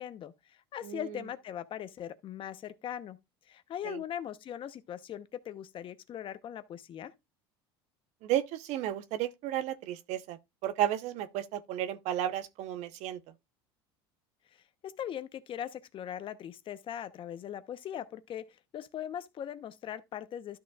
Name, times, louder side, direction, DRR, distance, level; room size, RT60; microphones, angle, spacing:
voice 1, 0.0-3.2 3.5-7.1 14.8-18.5 18.7-20.6, left 10 dB, 45° left, 0.9 m, -40 dB
voice 2, 0.8-1.2 3.8-4.0 8.2-10.4 10.6-13.2, right 12 dB, 60° right, 0.9 m, -33 dB
12.5 x 6.1 x 2.4 m
supercardioid pair, 95°, 13 cm